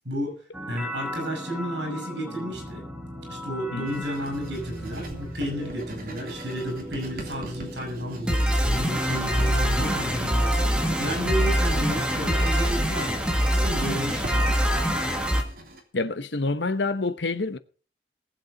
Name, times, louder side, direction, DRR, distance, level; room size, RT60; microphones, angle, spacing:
voice 1, 0.1-0.4 0.7-2.8 3.3-14.6, equal, 80° right, 7.1 m, -32 dB
sound 1, 0.5-15.4, equal, 5° right, 1.8 m, -27 dB
voice 2, 3.7-4.0 15.9-17.6, left 3 dB, 80° left, 1.1 m, -27 dB
Writing, 3.9-15.8, right 1 dB, 55° right, 3.3 m, -43 dB
19.0 x 8.1 x 5.2 m
head